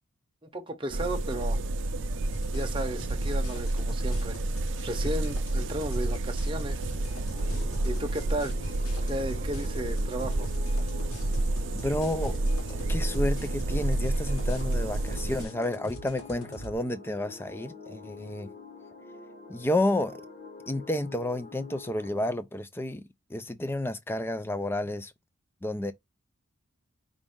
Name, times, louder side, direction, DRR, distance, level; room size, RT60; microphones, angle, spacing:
voice 1, 0.4-1.6 2.5-4.4 4.8-6.8 7.8-8.5 9.0-10.5, right 1 dB, 25° right, 0.7 m, -34 dB
sound 1, 0.9-15.4, right 2 dB, 60° right, 0.5 m, -29 dB
sound 2, 2.3-16.7, right 1 dB, 90° left, 1.2 m, -43 dB
sound 3, 6.9-22.3, left 4 dB, 40° left, 1.2 m, -47 dB
voice 2, 11.7-12.4 12.7-18.5 19.5-20.2 20.7-23.0 23.3-25.1 25.6-25.9, left 1 dB, 10° left, 0.3 m, -31 dB
4.9 x 2.5 x 3.6 m
head